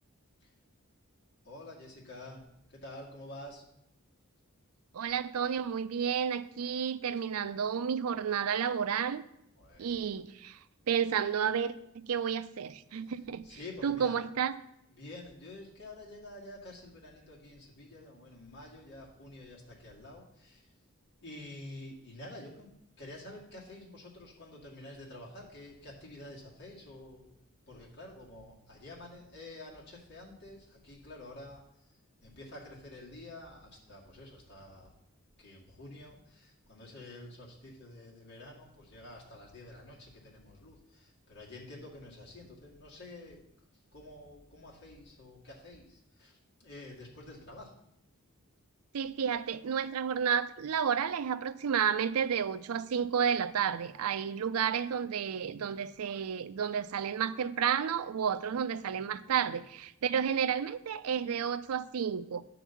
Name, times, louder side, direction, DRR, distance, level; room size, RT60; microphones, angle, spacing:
voice 1, 1.4-3.7 9.5-9.9 13.0-13.2 13.4-14.2 15.0-20.7 21.1-34.9 35.4-43.5 43.9-47.7, left 1 dB, 50° left, 2.2 m, -49 dB
voice 2, 4.9-9.2 9.8-10.6 10.9-13.4 13.8-14.5 48.9-62.4, right 7 dB, 90° right, 0.4 m, -31 dB
9.1 x 4.0 x 7.0 m
head